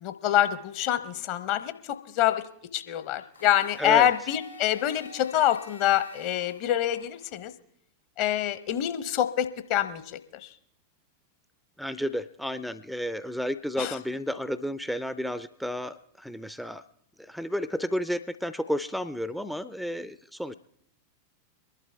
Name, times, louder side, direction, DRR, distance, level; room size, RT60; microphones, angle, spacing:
voice 1, 0.0-2.4 2.7-7.5 8.2-10.5 13.8-14.0, left 12 dB, 45° left, 12 dB, 1.0 m, -26 dB
Domestic sounds home sounds, 3.3-7.4, left 2 dB, 90° left, 3.7 m, -49 dB
voice 2, 3.8-4.1 11.8-16.8 17.2-20.5, equal, ahead, 15 dB, 0.4 m, -32 dB
23.5 x 11.5 x 3.4 m, 0.69 s
figure-of-eight pair, 90°, 0 cm